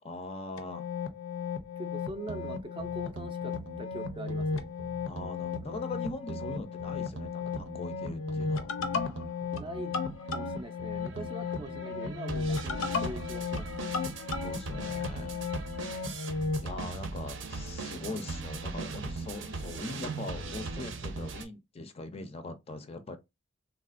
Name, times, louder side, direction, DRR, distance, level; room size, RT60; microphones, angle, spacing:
voice 1, 0.0-0.9 5.1-8.7 14.4-15.4 16.6-23.2, left 2 dB, 30° left, 0.4 m, -41 dB
sound 1, 0.6-16.7, left 5 dB, 85° left, 0.5 m, -35 dB
voice 2, 1.8-4.7 9.5-10.0 10.3-13.7 16.7-17.1, right 1 dB, 25° right, 0.4 m, -42 dB
sound 2, 2.3-21.4, right 3 dB, 70° right, 0.6 m, -40 dB
3.4 x 2.4 x 2.4 m
head